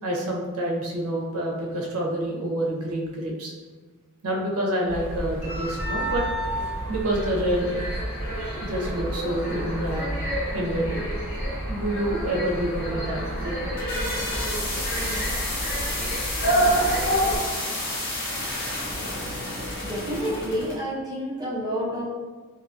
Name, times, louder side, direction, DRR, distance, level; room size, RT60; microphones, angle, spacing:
voice 1, 0.0-3.5 4.2-6.2 6.9-7.8 8.4-10.1 10.5-11.0 11.7-13.6, right 1 dB, 75° right, -1 dB, 0.6 m, -27 dB
sound 1, 4.9-17.4, right 1 dB, 60° left, 1.5 m, -28 dB
sound 2, 5.6-18.0, equal, 15° left, 1.3 m, -43 dB
sound 3, 13.5-20.8, left 1 dB, 45° left, 0.7 m, -31 dB
voice 2, 19.8-22.0, equal, 20° right, -5 dB, 0.4 m, -29 dB
2.7 x 2.2 x 2.6 m, 1.3 s
head